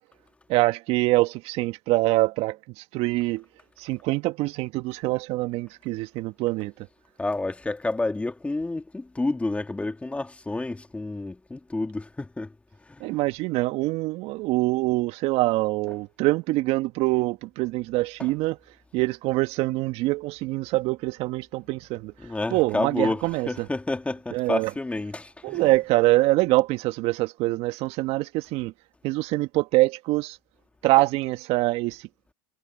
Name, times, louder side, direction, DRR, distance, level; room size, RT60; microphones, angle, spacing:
voice 1, 0.5-3.4 3.8-6.7 13.0-18.6 18.9-22.1 22.5-23.7 24.3-24.7 25.4-28.7 29.0-30.4 30.8-32.1, right 20 dB, 55° right, 1.7 m, -24 dB
voice 2, 7.2-12.5 22.2-25.7, left 2 dB, 10° left, 2.8 m, -29 dB
hypercardioid pair, 85°, 12 cm